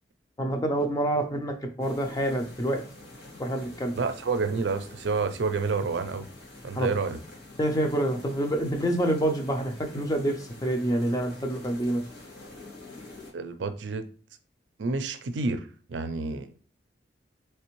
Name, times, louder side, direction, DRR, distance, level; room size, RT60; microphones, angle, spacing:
voice 1, 0.4-2.8 3.4-3.9 6.8-6.9 7.6-12.0, right 1 dB, 20° left, 4 dB, 0.5 m, -27 dB
sound 1, 1.8-13.3, left 2 dB, 60° left, 1.7 m, -47 dB
voice 2, 4.0-6.3 6.6-7.2 13.3-14.0 14.8-16.5, right 4 dB, 85° right, 9 dB, 0.5 m, -29 dB
3.3 x 3.3 x 3.0 m, 0.41 s
head